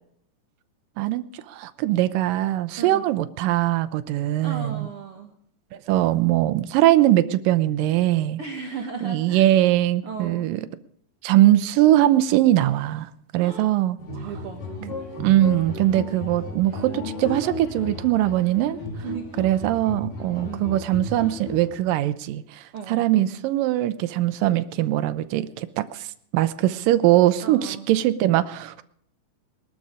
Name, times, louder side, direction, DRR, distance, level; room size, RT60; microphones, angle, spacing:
voice 1, 1.0-4.9 5.9-8.4 9.0-10.6 11.2-14.0 15.2-18.8 19.4-26.1 26.3-28.8, right 14 dB, 90° right, 13 dB, 2.5 m, -21 dB
voice 2, 4.4-5.3 8.4-9.5 10.0-10.5 13.4-13.7 14.1-14.9 19.0-19.8 20.4-20.7 22.7-23.0 27.4-27.9, right 5 dB, 50° right, 3 dB, 1.9 m, -36 dB
sound 1, 14.0-21.7, left 3 dB, 85° left, 5.4 m, -34 dB
20.5 x 12.5 x 4.9 m, 0.68 s
omnidirectional pair, 3.8 m